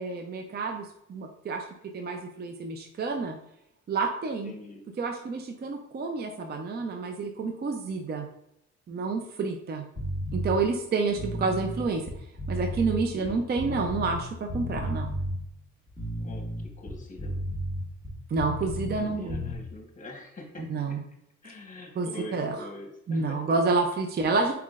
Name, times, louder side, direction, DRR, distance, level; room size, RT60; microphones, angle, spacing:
voice 1, 0.0-1.6 1.9-3.4 3.9-4.5 5.0-8.3 8.9-9.8 10.3-12.0 12.5-15.2 18.3-19.4 20.7-21.0 22.0-22.6 23.1-24.5, right 4 dB, 35° right, 4 dB, 0.5 m, -29 dB
voice 2, 4.4-4.8 13.1-13.7 16.2-16.5 16.8-17.5 18.8-21.0 21.4-23.5, left 1 dB, 25° left, 1 dB, 1.2 m, -44 dB
sound 1, 10.0-10.6 11.1-14.2 14.5-15.4 15.9-19.0 19.3-19.6, equal, 15° right, 1.5 m, -33 dB
4.4 x 3.6 x 2.4 m, 0.78 s
cardioid pair, 90°, 30 cm